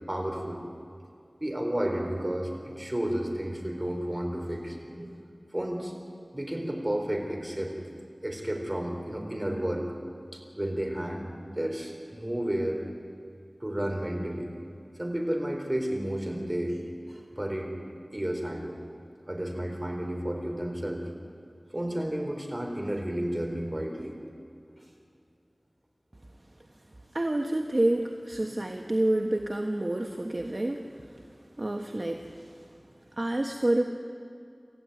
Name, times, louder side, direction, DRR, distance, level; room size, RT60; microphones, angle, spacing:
voice 1, 0.1-0.6 1.4-2.5 2.8-5.1 5.5-5.9 6.3-7.7 8.2-9.8 10.3-11.3 11.5-12.8 13.6-14.5 15.0-16.8 17.1-17.7 18.1-18.8 19.3-21.0 21.7-24.2 24.8-24.9, right 1 dB, 25° right, 2 dB, 4.2 m, -32 dB
voice 2, 27.1-30.8 31.6-32.5 33.2-33.8, right 1 dB, 50° right, 3 dB, 1.3 m, -28 dB
27.5 x 14.5 x 9.4 m, 2.5 s
wide cardioid pair, 50°, 0 cm